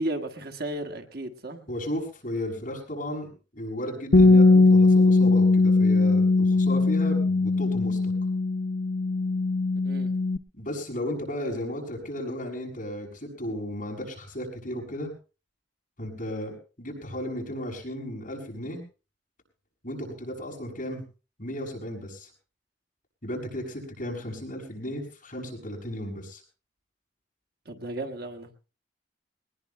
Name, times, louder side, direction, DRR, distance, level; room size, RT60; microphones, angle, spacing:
voice 1, 0.0-1.7 9.8-10.1 27.6-28.5, right 1 dB, 60° right, 4 dB, 1.5 m, -34 dB
voice 2, 1.7-8.1 10.5-15.1 16.0-18.8 19.8-21.0 21.4-22.3 23.2-26.4, left 1 dB, 45° left, -1 dB, 6.5 m, -34 dB
Bass guitar, 4.1-10.4, left 3 dB, 65° left, 0.7 m, -20 dB
22.5 x 19.5 x 2.2 m, 0.33 s
head